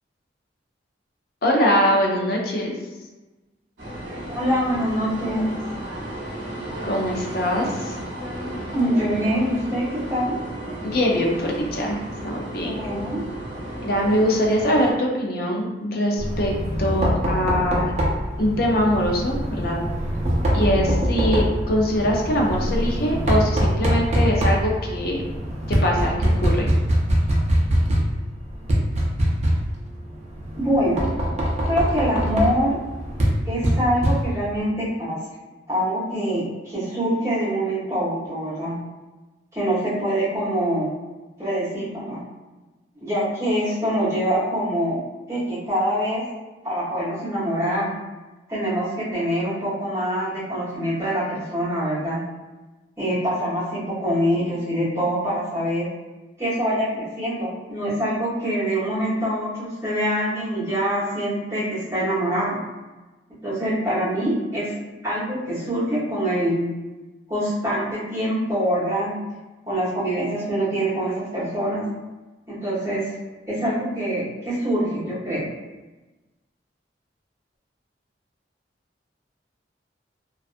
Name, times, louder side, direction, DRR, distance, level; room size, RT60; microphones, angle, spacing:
voice 1, 1.4-2.7 6.8-8.0 10.8-12.0 12.2-12.8 13.8-16.5 16.8-17.9 18.4-19.8 20.5-25.2 25.7-26.7, equal, 55° left, -1 dB, 0.5 m, -22 dB
sound 1, 3.8-14.9, right 1 dB, 80° right, 0.7 m, -34 dB
voice 2, 4.3-5.5 8.7-10.4 12.6-13.2 30.6-31.0 31.6-32.8 33.5-35.2 35.7-38.8 39.5-40.9 41.4-42.2 43.0-45.0 45.3-46.2 46.6-47.9 48.5-52.2 53.0-55.9 56.4-62.6 63.4-64.7 65.0-66.7 67.3-69.2 69.7-71.8 72.5-73.1 73.5-75.5, equal, 15° right, -10 dB, 1.0 m, -24 dB
Knock, 16.2-34.6, equal, 40° right, 0.5 m, -23 dB
2.5 x 2.3 x 2.4 m, 1.1 s
head